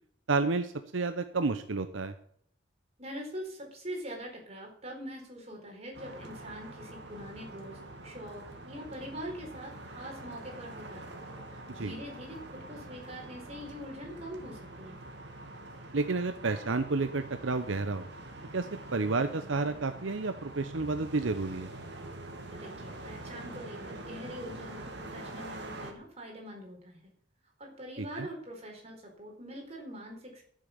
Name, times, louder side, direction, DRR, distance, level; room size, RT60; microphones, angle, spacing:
voice 1, 0.3-2.1 11.7-11.9 15.9-18.1 18.5-21.7 28.0-28.3, right 3 dB, 75° right, 10 dB, 0.8 m, -31 dB
voice 2, 3.0-11.1 11.7-15.0 22.5-27.0 27.6-30.4, equal, 30° right, 0 dB, 4.5 m, -43 dB
sound 1, 5.9-25.9, right 2 dB, 60° right, 2.4 m, -45 dB
13.5 x 7.8 x 6.9 m, 0.65 s
head